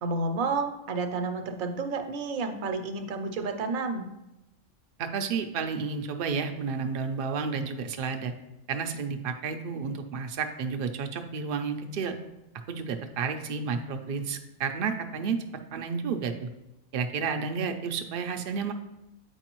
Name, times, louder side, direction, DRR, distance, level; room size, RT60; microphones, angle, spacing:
voice 1, 0.0-4.0, right 3 dB, 85° right, 6 dB, 1.1 m, -30 dB
voice 2, 5.0-8.3 8.7-12.1 12.7-15.4 15.7-16.5 16.9-18.7, right 5 dB, 55° right, 6 dB, 0.6 m, -31 dB
7.9 x 4.8 x 3.0 m, 0.92 s
omnidirectional pair, 1.4 m